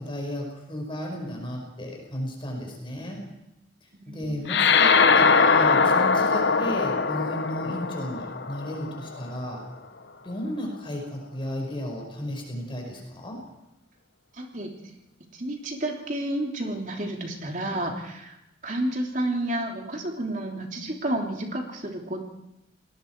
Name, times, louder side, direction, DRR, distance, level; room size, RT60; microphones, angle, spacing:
voice 1, 0.0-3.2 4.1-9.6 10.2-13.4, equal, 30° left, 1 dB, 5.2 m, -34 dB
voice 2, 4.0-4.6 14.3-14.7 15.4-18.4 18.6-22.3, right 1 dB, 45° right, 1 dB, 3.1 m, -31 dB
sound 1, 4.5-9.2, left 5 dB, 70° left, 1.0 m, -21 dB
29.0 x 20.0 x 4.6 m, 0.88 s
head